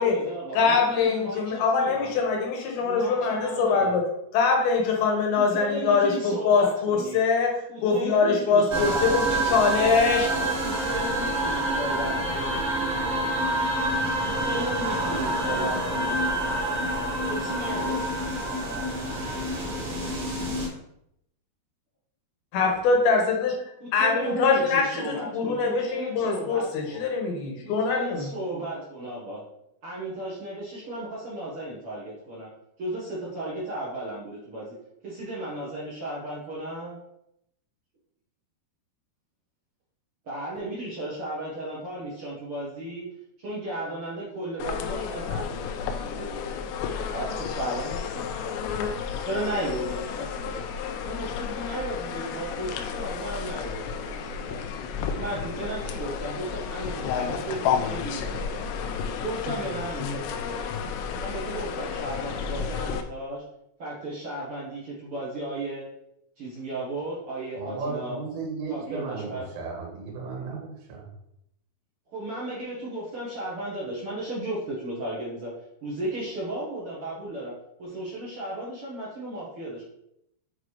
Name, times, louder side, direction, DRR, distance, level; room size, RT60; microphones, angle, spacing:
voice 1, 0.0-2.1 2.8-4.0 5.4-7.2 7.7-9.6 10.3-12.5 13.1-13.2 14.2-16.2 17.3-18.1 23.8-27.0 27.6-29.4 29.8-32.5 32.8-34.7 35.0-37.0 40.2-43.0 43.4-46.4 47.1-48.9 49.2-50.6 51.0-54.6 55.2-58.9 59.2-60.8 61.2-63.4 63.8-65.8 66.4-68.2 68.7-69.5 72.1-75.5 75.8-77.5 77.8-79.8, right 1 dB, 65° right, -6 dB, 1.3 m, -35 dB
voice 2, 0.5-4.0 4.3-10.3 22.5-23.6 23.9-28.2, left 4 dB, 75° left, 1 dB, 2.8 m, -23 dB
sound 1, 8.7-20.7, right 1 dB, 40° right, 1.9 m, -27 dB
sound 2, 44.6-63.0, left 7 dB, 90° left, 2.8 m, -32 dB
voice 3, 67.6-71.1, right 4 dB, 85° right, -2 dB, 3.5 m, -35 dB
7.7 x 4.7 x 3.2 m, 0.78 s
omnidirectional pair, 4.9 m